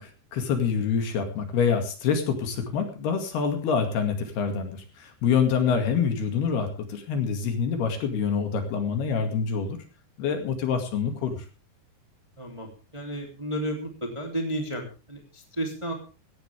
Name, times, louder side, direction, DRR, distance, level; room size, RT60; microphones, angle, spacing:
voice 1, 0.0-9.8 10.2-11.4, left 6 dB, 65° left, 6 dB, 4.1 m, -26 dB
voice 2, 12.4-15.9, right 1 dB, 10° right, 2 dB, 2.3 m, -33 dB
17.5 x 16.0 x 3.5 m, 0.33 s
omnidirectional pair, 5.1 m